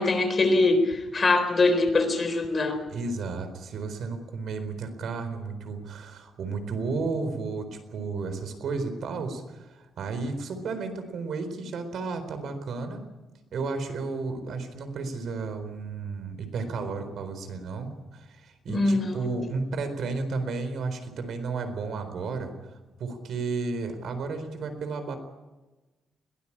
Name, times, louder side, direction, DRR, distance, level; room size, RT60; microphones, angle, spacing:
voice 1, 0.0-2.8 18.7-19.1, left 3 dB, 30° left, 7 dB, 4.0 m, -23 dB
voice 2, 2.9-13.1 13.5-22.5 23.0-25.2, right 4 dB, 65° right, 9 dB, 4.1 m, -33 dB
22.0 x 18.5 x 8.7 m, 1.2 s
cardioid pair, 145°, 0 cm